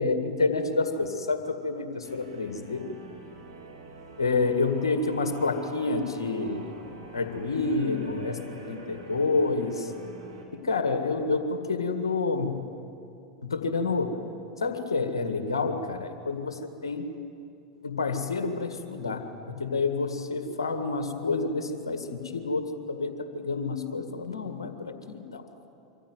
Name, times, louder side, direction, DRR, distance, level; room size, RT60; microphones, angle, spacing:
voice 1, 0.0-2.8 4.2-6.7 7.1-9.9 10.5-12.6 13.4-14.2 14.6-17.1 17.8-25.4, left 3 dB, 80° left, 7 dB, 2.0 m, -28 dB
sound 1, 2.0-10.5, right 3 dB, 75° right, 3.2 m, -46 dB
24.5 x 15.0 x 9.4 m, 2.7 s
figure-of-eight pair, 90°, 2 cm